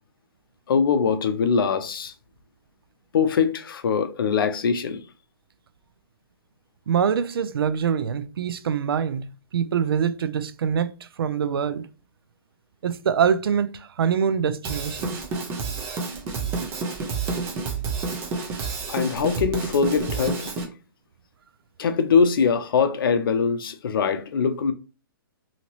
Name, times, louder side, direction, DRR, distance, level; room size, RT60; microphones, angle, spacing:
voice 1, 0.7-2.1 3.1-5.0 18.9-20.7 21.8-24.7, left 6 dB, 70° left, 0.5 m, -22 dB
voice 2, 6.9-10.9 11.2-11.9 12.8-15.2, right 7 dB, 85° right, 0.4 m, -24 dB
Drum kit / Drum, 14.6-20.6, right 4 dB, 20° right, 0.6 m, -29 dB
2.8 x 2.8 x 2.9 m
hypercardioid pair, 155°, 12 cm